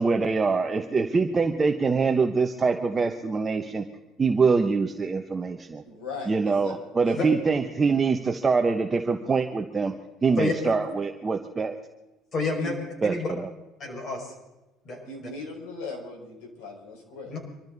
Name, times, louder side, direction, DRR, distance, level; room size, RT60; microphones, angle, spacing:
voice 1, 0.0-3.8 4.2-5.8 6.3-10.0 10.2-11.8 13.0-13.5, right 4 dB, 20° right, 5 dB, 0.9 m, -24 dB
voice 2, 5.8-6.7 7.0-7.3 12.6-12.8 15.0-17.3, left 3 dB, 85° left, -1 dB, 4.9 m, -38 dB
voice 3, 10.4-10.7 12.3-12.8 13.0-13.3 13.8-14.3 14.8-15.3 17.3-17.4, left 3 dB, 40° left, 1 dB, 5.6 m, -29 dB
25.0 x 13.5 x 4.0 m, 1.0 s
cardioid pair, 125°, 0 cm